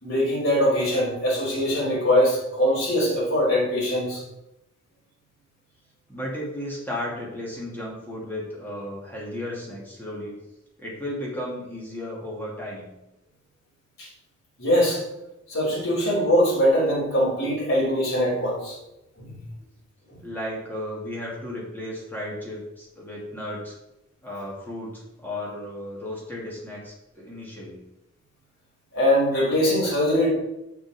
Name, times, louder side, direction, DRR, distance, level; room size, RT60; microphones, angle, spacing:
voice 1, 0.0-4.2 14.0-14.1 14.6-15.0 15.5-18.8 19.2-19.3 28.9-30.3, equal, 85° left, -5 dB, 3.5 m, -22 dB
voice 2, 6.1-10.4 10.8-12.9 20.2-23.8 24.2-27.8, left 1 dB, 10° left, -4 dB, 2.3 m, -34 dB
7.3 x 6.2 x 4.8 m, 0.89 s
head